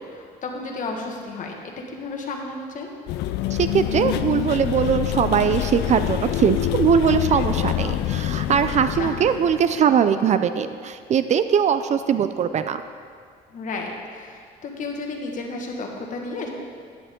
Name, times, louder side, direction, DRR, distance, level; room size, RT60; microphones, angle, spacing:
voice 1, 0.0-1.5 1.9-2.9 9.0-9.1 13.5-16.5, left 3 dB, 50° left, 1 dB, 1.6 m, -32 dB
sound 1, 3.1-9.9, left 13 dB, 80° left, 0.4 m, -26 dB
voice 2, 3.5-12.8, right 8 dB, 45° right, 11 dB, 0.4 m, -21 dB
10.5 x 9.8 x 3.7 m, 2.1 s
cardioid pair, 110°, 17 cm